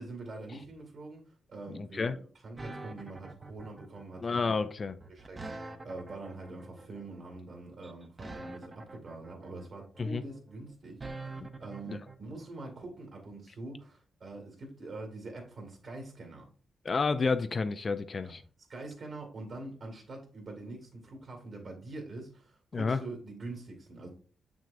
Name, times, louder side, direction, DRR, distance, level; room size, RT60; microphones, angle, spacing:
voice 1, 0.0-2.2 2.4-4.5 5.1-16.5 18.2-18.3 18.7-24.1, right 2 dB, 55° right, 1.9 m, -44 dB
voice 2, 1.7-2.2 4.2-5.0 10.0-10.2 11.9-12.0 16.8-18.4 22.7-23.0, left 4 dB, 35° left, 0.4 m, -30 dB
sound 1, 2.6-12.1, right 2 dB, 25° right, 0.7 m, -45 dB
7.0 x 6.1 x 2.5 m
wide cardioid pair, 135°, 0 cm